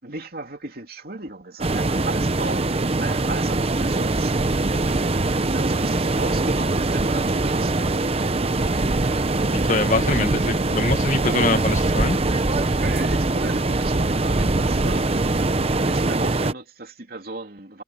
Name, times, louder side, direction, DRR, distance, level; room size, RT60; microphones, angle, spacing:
voice 1, 0.0-7.8 12.8-15.4 15.9-17.8, right 2 dB, 55° right, 3.1 m, -35 dB
sound 1, 1.6-16.5, right 2 dB, 35° right, 0.8 m, -22 dB
voice 2, 9.5-12.2, left 3 dB, 45° left, 1.6 m, -24 dB
head